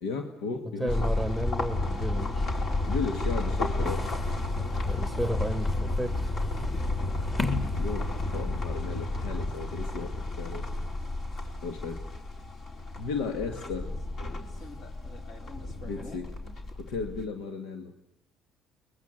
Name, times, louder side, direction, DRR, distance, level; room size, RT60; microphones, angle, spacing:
voice 1, 0.0-1.1 2.9-4.2 7.7-10.7 11.6-12.0 13.0-13.9 14.5-14.7 15.8-16.3 16.7-17.9, left 4 dB, 85° left, 5 dB, 2.0 m, -35 dB
voice 2, 0.8-2.5 4.9-6.2, right 1 dB, 5° left, 9 dB, 1.5 m, -32 dB
sound 1, 0.9-17.3, left 2 dB, 50° left, 4.3 m, -31 dB
sound 2, 3.9-8.6, left 3 dB, 25° left, 3.2 m, -38 dB
30.0 x 23.0 x 8.1 m, 0.82 s
cardioid pair, 95°, 0 cm